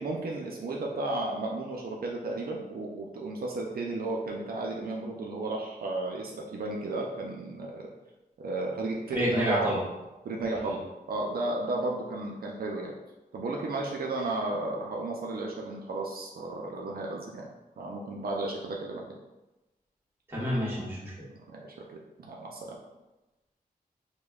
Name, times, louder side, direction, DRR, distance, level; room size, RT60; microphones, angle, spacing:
voice 1, 0.0-7.8 8.4-9.8 10.2-10.8 11.1-12.9 13.3-17.5 17.8-19.0 21.5-22.8, right 2 dB, 70° right, -1 dB, 0.4 m, -33 dB
voice 2, 9.1-9.8 20.3-21.1, equal, 15° right, -8 dB, 1.1 m, -28 dB
5.0 x 2.1 x 2.3 m, 1.0 s
wide cardioid pair, 155°, 16 cm